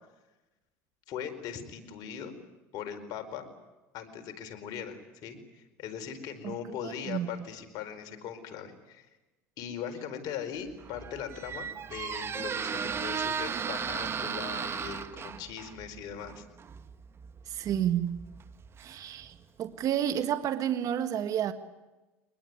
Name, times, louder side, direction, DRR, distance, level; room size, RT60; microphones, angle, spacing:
voice 1, 1.1-2.3 2.7-3.5 3.9-9.1 9.6-16.5, left 8 dB, 60° left, 4.7 m, -40 dB
voice 2, 6.8-7.3 17.5-18.3 18.8-21.5, right 10 dB, 50° right, 1.7 m, -30 dB
Squeak, 10.7-19.4, right 6 dB, 35° right, 1.7 m, -36 dB
24.5 x 20.5 x 9.7 m
supercardioid pair, 95°, 7 cm